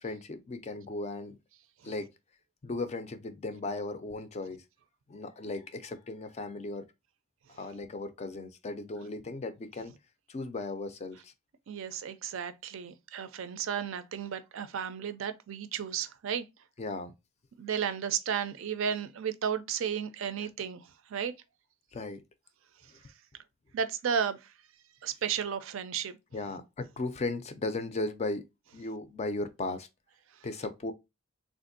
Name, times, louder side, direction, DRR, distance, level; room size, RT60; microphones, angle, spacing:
voice 1, 0.0-1.4 1.8-2.1 2.6-4.6 5.1-6.9 7.6-9.9 10.3-11.3 16.8-17.1 20.4-20.5 21.9-22.2 26.3-28.5 28.7-29.9 30.4-30.9, left 2 dB, 30° left, 0.4 m, -36 dB
voice 2, 11.7-16.5 17.6-21.3 23.7-24.5 25.0-26.2, right 7 dB, 65° right, 0.4 m, -33 dB
3.5 x 2.5 x 2.5 m
head